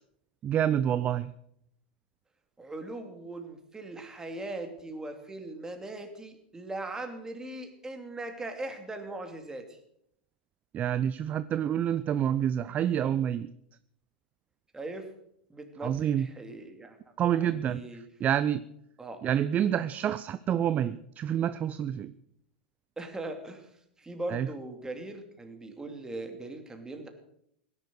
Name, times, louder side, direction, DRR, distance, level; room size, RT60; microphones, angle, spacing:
voice 1, 0.4-1.3 10.7-13.5 15.8-16.3 17.2-18.6 19.2-22.1 24.3-24.5, right 10 dB, 30° right, 14 dB, 0.6 m, -28 dB
voice 2, 2.6-9.8 14.7-15.1 15.5-17.0 17.3-18.0 19.0-19.2 23.0-23.7 24.0-27.1, right 2 dB, 10° right, 5 dB, 2.9 m, -40 dB
18.0 x 11.0 x 6.3 m, 0.73 s
hypercardioid pair, 105°, 6 cm